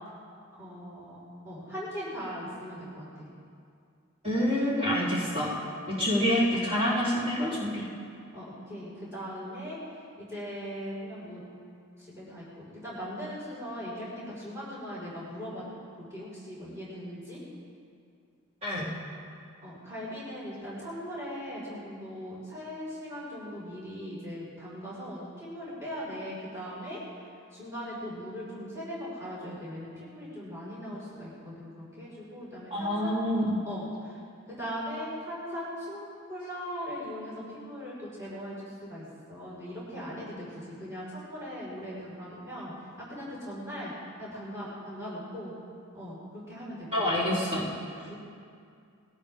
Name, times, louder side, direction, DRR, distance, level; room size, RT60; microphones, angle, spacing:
voice 1, 0.6-3.3 6.0-6.1 8.3-9.8 10.2-11.4 12.0-15.7 16.0-17.4 19.6-27.0 27.5-33.1 33.7-34.2 34.5-39.0 39.3-43.9 44.2-45.5 45.9-47.1 48.1-48.2, equal, 15° right, -9 dB, 5.1 m, -39 dB
voice 2, 4.2-5.5 5.9-7.8 18.6-18.8 32.7-33.6 46.9-47.7, equal, 30° right, -9 dB, 3.8 m, -27 dB
21.5 x 17.5 x 3.7 m, 2.3 s
head